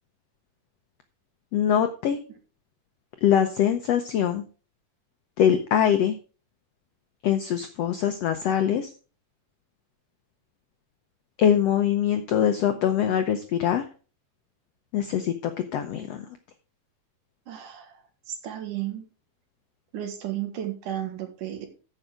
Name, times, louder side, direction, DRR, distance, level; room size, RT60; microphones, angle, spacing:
voice 1, 1.5-2.2 3.2-4.4 5.4-6.1 7.2-8.9 11.4-13.8 14.9-16.2, left 9 dB, 85° left, 8 dB, 1.4 m, -23 dB
voice 2, 17.5-17.9 18.3-19.1 19.9-21.7, right 11 dB, 65° right, 6 dB, 3.0 m, -33 dB
13.5 x 5.7 x 5.0 m, 0.36 s
omnidirectional pair, 4.1 m